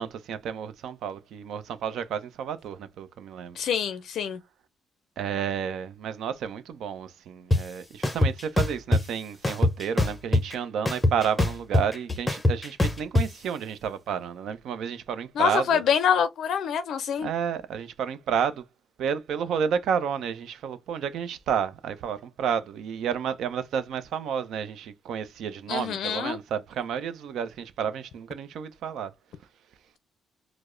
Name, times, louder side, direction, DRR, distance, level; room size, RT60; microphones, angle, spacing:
voice 1, 0.0-3.6 5.2-15.8 17.2-18.6 19.0-29.1, right 7 dB, 75° right, 0.5 m, -31 dB
voice 2, 3.6-4.4 15.4-17.3 25.7-26.4, left 8 dB, 70° left, 0.4 m, -25 dB
sound 1, 7.5-7.6 8.0-9.0 9.4-10.5 10.9-13.3, left 2 dB, 15° left, 0.7 m, -22 dB
4.6 x 2.0 x 2.5 m
cardioid pair, 90°, 0 cm